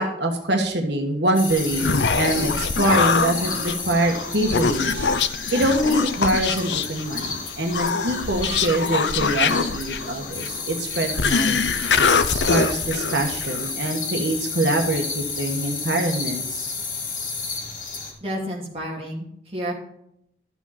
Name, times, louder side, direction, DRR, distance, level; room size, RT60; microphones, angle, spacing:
voice 1, 0.0-5.1 5.5-11.9 12.5-16.7, right 1 dB, 85° right, 3 dB, 1.5 m, -24 dB
sound 1, 1.3-18.1, left 4 dB, 45° left, 2.5 m, -32 dB
Human voice, 1.5-13.7, left 5 dB, 90° left, 0.7 m, -24 dB
voice 2, 18.2-19.7, equal, 35° right, -2 dB, 2.9 m, -30 dB
12.5 x 7.2 x 4.3 m, 0.74 s
head